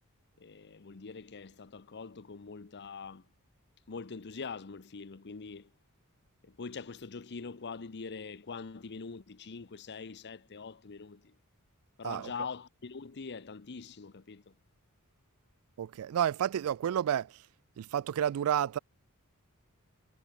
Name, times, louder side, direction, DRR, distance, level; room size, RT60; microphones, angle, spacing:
voice 1, 0.4-3.3 3.9-5.7 6.4-11.4 12.0-14.6, left 5 dB, 50° left, 0.8 m, -43 dB
voice 2, 15.8-17.4 17.8-18.8, right 9 dB, 70° right, 0.3 m, -30 dB
head